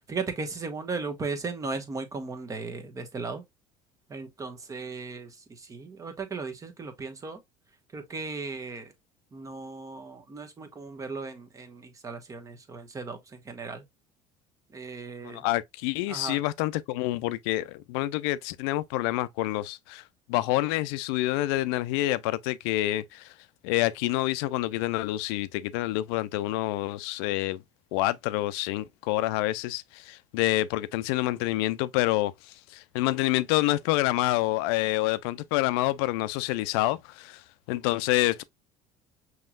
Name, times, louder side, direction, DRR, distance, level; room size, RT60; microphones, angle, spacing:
voice 1, 0.1-3.4 4.1-5.3 5.7-7.4 7.9-8.9 9.3-13.2 13.4-13.8 14.7-15.4 16.1-16.4, right 4 dB, 25° right, 1.1 m, -36 dB
voice 2, 15.2-20.0 20.3-23.3 23.6-27.6 27.9-37.4 37.7-38.4, left 17 dB, 85° left, 0.4 m, -27 dB
5.6 x 3.0 x 2.3 m
supercardioid pair, 110°, 13 cm